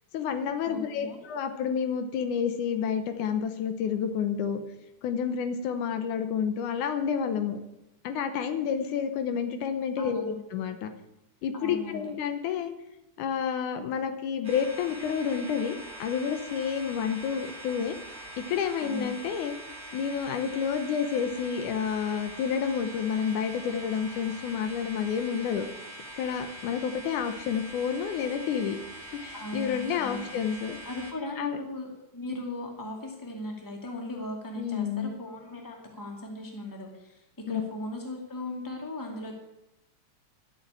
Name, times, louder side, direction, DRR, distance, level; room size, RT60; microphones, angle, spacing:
voice 1, 0.1-4.6 5.0-7.6 8.0-10.9 11.4-12.7 13.2-18.0 18.4-19.5 19.9-25.7 26.1-28.8 29.2-30.8 31.4-31.6 34.6-35.1 37.5-37.6, left 7 dB, 80° left, 8 dB, 2.4 m, -29 dB
voice 2, 0.7-1.2 10.0-10.3 11.5-12.1 18.8-19.1 29.3-30.3 30.8-39.3, left 1 dB, 10° left, 1 dB, 1.7 m, -38 dB
sound 1, 14.4-31.1, right 1 dB, 25° right, 1.8 m, -43 dB
11.5 x 7.2 x 8.7 m, 0.90 s
omnidirectional pair, 3.5 m